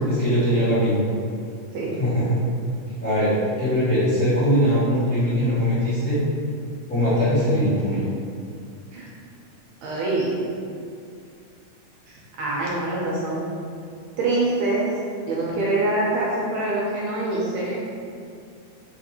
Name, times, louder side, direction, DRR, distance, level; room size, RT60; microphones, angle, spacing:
voice 1, 0.0-1.0 2.0-2.4 3.0-6.2 6.9-8.0, equal, 50° left, -16 dB, 1.0 m, -21 dB
voice 2, 9.8-10.4 12.4-13.4 14.2-14.9 15.3-17.8, right 2 dB, 75° right, -5 dB, 1.8 m, -24 dB
4.6 x 2.5 x 2.8 m, 2.4 s
omnidirectional pair, 3.4 m